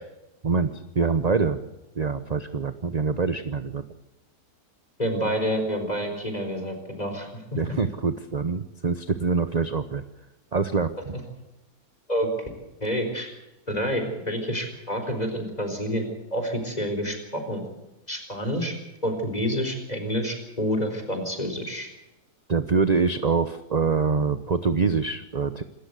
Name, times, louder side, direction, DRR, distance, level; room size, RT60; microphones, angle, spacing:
voice 1, 0.4-1.6 1.9-3.8 7.6-10.0 10.5-11.2 22.5-25.6, right 4 dB, 35° right, 11 dB, 0.7 m, -25 dB
voice 2, 5.0-7.6 12.1-12.3 12.8-13.3 13.7-17.6 18.1-18.7 19.0-21.9, equal, 25° left, 6 dB, 4.4 m, -28 dB
26.5 x 13.5 x 8.2 m, 0.97 s
omnidirectional pair, 1.8 m